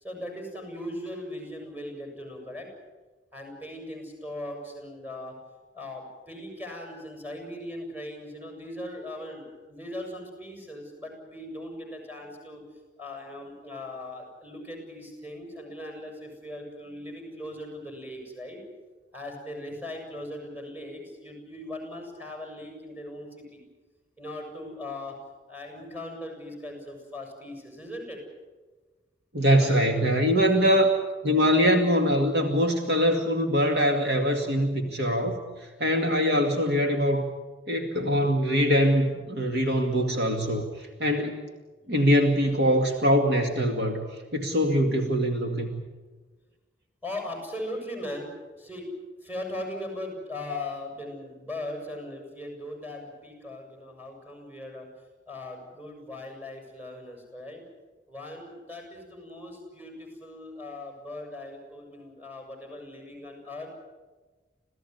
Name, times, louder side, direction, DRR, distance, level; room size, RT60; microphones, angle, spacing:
voice 1, 0.0-2.7 3.3-5.3 5.7-12.6 13.0-18.6 19.1-23.6 24.2-25.2 25.5-28.2 29.6-29.8 30.5-30.9 35.9-36.2 47.0-48.3 48.6-48.9 49.2-54.9 55.3-57.6 58.1-63.7, left 1 dB, 10° right, 3 dB, 7.3 m, -39 dB
voice 2, 29.3-30.9 31.2-35.4 35.8-37.2 37.7-41.5 41.9-44.0 44.3-45.8, equal, 60° right, 4 dB, 2.3 m, -23 dB
27.0 x 17.0 x 9.5 m, 1.3 s
head